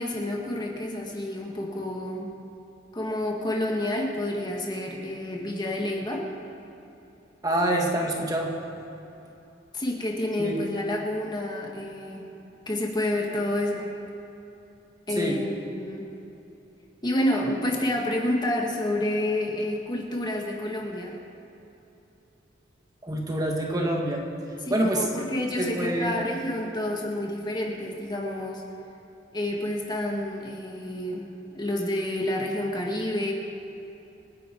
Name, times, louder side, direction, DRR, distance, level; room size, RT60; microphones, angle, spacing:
voice 1, 0.0-2.3 2.9-6.3 9.7-12.3 12.7-13.9 15.1-16.1 17.0-21.2 24.7-28.6 29.3-33.3, left 1 dB, 25° left, 0 dB, 1.9 m, -29 dB
voice 2, 7.4-8.5 10.4-10.6 15.2-15.4 23.0-24.2 24.7-25.1 25.6-26.2, right 1 dB, 20° right, 0 dB, 1.9 m, -26 dB
27.0 x 10.5 x 4.6 m, 3.0 s
head